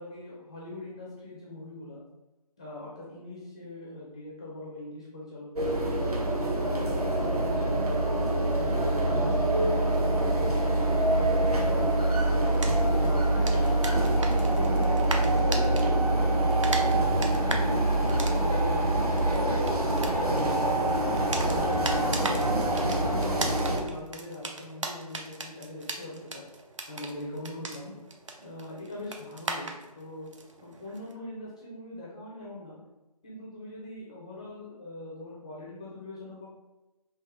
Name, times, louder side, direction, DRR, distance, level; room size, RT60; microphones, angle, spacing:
voice 1, 0.0-2.0 2.6-5.7 6.2-9.5 9.9-10.4 10.7-13.5 14.0-16.5 16.9-19.7 20.2-22.4 22.8-26.4 26.9-27.9 28.4-29.7 30.0-32.8 33.2-36.5, left 2 dB, 10° left, -5 dB, 0.4 m, -41 dB
sound 1, 5.6-23.8, right 1 dB, 70° right, 1.1 m, -25 dB
sound 2, 12.5-15.9 16.1-31.1, right 3 dB, 50° right, 0.6 m, -39 dB
5.2 x 2.6 x 3.7 m, 1.1 s
figure-of-eight pair, 155°, 20 cm